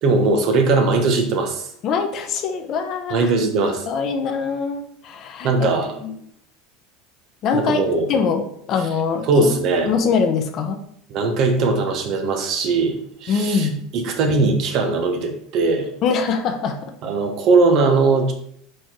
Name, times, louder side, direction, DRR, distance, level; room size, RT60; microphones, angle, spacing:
voice 1, 0.0-1.7 3.1-3.8 5.4-5.9 7.5-8.1 9.3-9.9 11.1-13.7 13.9-15.9 17.0-18.3, right 3 dB, 55° right, 4 dB, 1.3 m, -19 dB
voice 2, 1.8-3.3 3.9-5.5 6.0-6.1 7.4-7.8 8.1-9.5 9.9-10.8 13.3-13.8 16.0-16.9, left 5 dB, 50° left, 6 dB, 0.9 m, -23 dB
4.7 x 4.4 x 4.5 m, 0.68 s
supercardioid pair, 105°, 0 cm